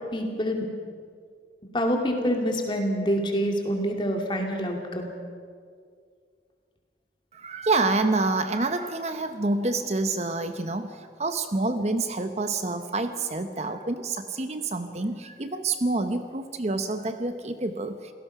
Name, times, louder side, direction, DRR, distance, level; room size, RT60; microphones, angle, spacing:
voice 1, 0.1-0.7 1.7-5.1, equal, 25° left, 2 dB, 2.6 m, -26 dB
voice 2, 7.3-18.1, right 3 dB, 35° right, 9 dB, 0.8 m, -27 dB
27.5 x 17.5 x 5.8 m, 2.1 s
head